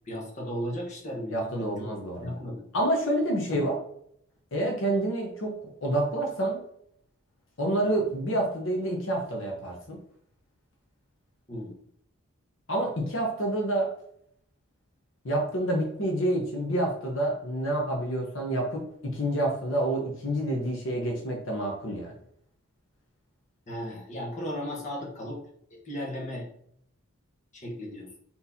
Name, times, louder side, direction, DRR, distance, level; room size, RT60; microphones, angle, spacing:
voice 1, 0.0-1.9 2.2-2.6 3.5-3.7 11.5-11.7 23.7-25.4 25.7-26.5 27.5-28.1, equal, 35° left, -3 dB, 1.2 m, -35 dB
voice 2, 1.3-2.3 2.7-3.8 4.5-6.6 7.6-10.0 12.7-13.9 15.2-22.1, right 1 dB, 60° left, 0 dB, 0.9 m, -28 dB
4.2 x 4.1 x 2.8 m, 0.68 s
head